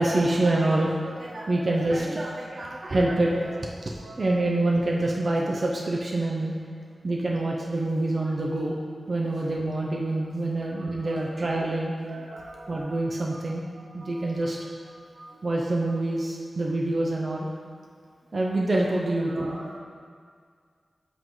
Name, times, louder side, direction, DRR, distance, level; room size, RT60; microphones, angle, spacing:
voice 1, 0.0-3.5 3.9-6.5 7.0-8.8 9.1-11.9 12.7-13.6 13.9-14.6 15.4-17.5 18.3-19.6, right 2 dB, 45° right, -2 dB, 0.6 m, -26 dB
voice 2, 10.6-11.1 12.1-13.0 14.0-14.1 15.2-15.3 19.3-19.8, right 2 dB, 85° right, -2 dB, 0.9 m, -43 dB
7.5 x 3.2 x 4.7 m, 2.1 s
wide cardioid pair, 105°, 0 cm